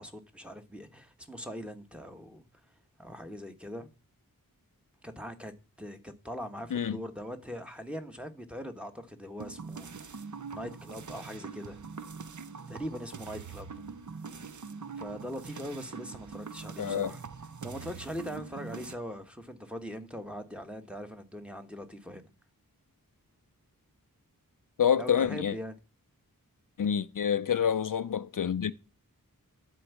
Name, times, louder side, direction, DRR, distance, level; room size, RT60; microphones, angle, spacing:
voice 1, 0.0-2.4 3.0-3.9 5.0-5.5 5.8-9.9 10.5-11.8 12.7-13.8 15.0-17.2 17.6-22.3 25.0-25.8, equal, 5° right, 1.3 m, -41 dB
sound 1, 9.4-18.9, right 5 dB, 55° right, 0.7 m, -43 dB
voice 2, 16.8-17.1 24.8-25.5 26.8-28.7, left 8 dB, 65° left, 0.5 m, -27 dB
11.5 x 4.6 x 8.2 m
wide cardioid pair, 65°, 35 cm